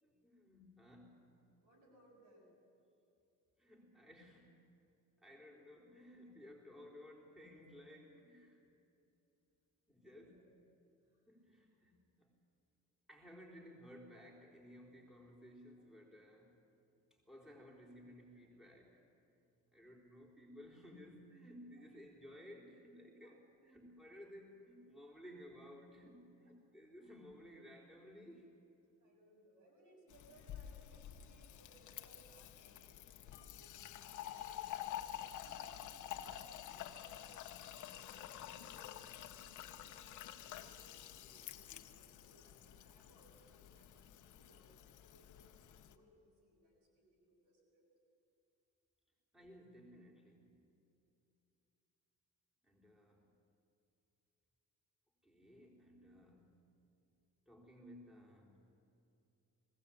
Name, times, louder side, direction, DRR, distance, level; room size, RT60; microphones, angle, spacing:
voice 1, 0.0-1.3 3.6-4.6 5.2-8.6 9.9-10.4 11.3-12.3 13.1-16.6 17.1-19.1 19.7-28.6 49.3-50.7 52.6-53.3 55.2-56.6 57.5-58.7, equal, ahead, -1 dB, 3.9 m, -57 dB
voice 2, 1.6-2.5 6.2-6.3 10.0-10.4 11.0-11.3 21.8-21.9 23.2-23.4 25.2-25.3 29.0-38.9 39.2-47.9, right 1 dB, 85° right, -1 dB, 6.5 m, -67 dB
Fill (with liquid), 30.1-45.9, left 11 dB, 80° left, 1.1 m, -49 dB
20.0 x 16.0 x 8.6 m, 2.7 s
cardioid pair, 90°, 30 cm